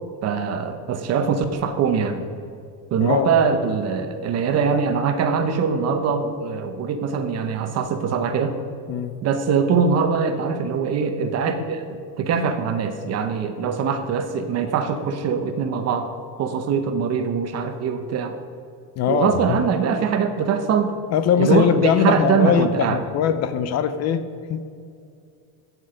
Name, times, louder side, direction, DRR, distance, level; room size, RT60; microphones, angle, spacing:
voice 1, 0.2-2.2 2.9-8.6 9.2-16.1 16.4-18.4 19.1-21.0 21.4-23.0, right 6 dB, 40° right, 8 dB, 1.0 m, -22 dB
voice 2, 3.0-3.3 8.9-9.1 19.0-19.6 21.1-24.2 24.5-24.6, left 8 dB, 45° left, 11 dB, 0.6 m, -21 dB
15.5 x 6.4 x 5.0 m, 2.4 s
cardioid pair, 150°, 39 cm